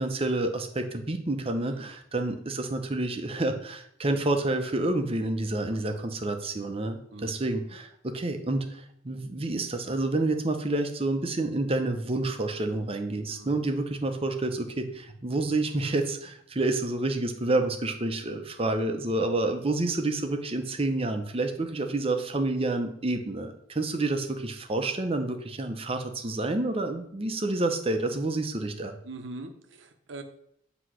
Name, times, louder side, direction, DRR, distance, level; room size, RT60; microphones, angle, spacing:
voice 1, 0.0-29.0, right 2 dB, 30° right, 6 dB, 0.7 m, -29 dB
voice 2, 5.7-6.0 7.1-7.4 13.3-13.6 29.0-30.2, right 2 dB, 60° right, 6 dB, 0.8 m, -43 dB
7.9 x 3.0 x 6.2 m, 0.71 s
head